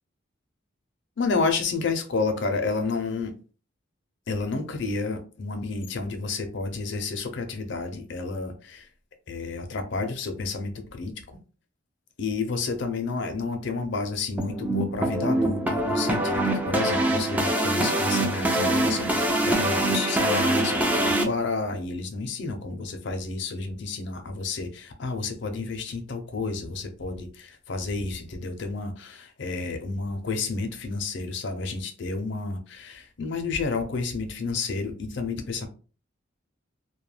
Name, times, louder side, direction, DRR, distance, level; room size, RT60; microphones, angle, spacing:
voice 1, 1.2-3.4 4.3-8.9 9.3-11.1 12.2-35.7, left 4 dB, 60° left, 0.5 m, -30 dB
sound 1, 14.4-21.2, right 1 dB, 10° right, 0.3 m, -24 dB
2.2 x 2.2 x 3.1 m
head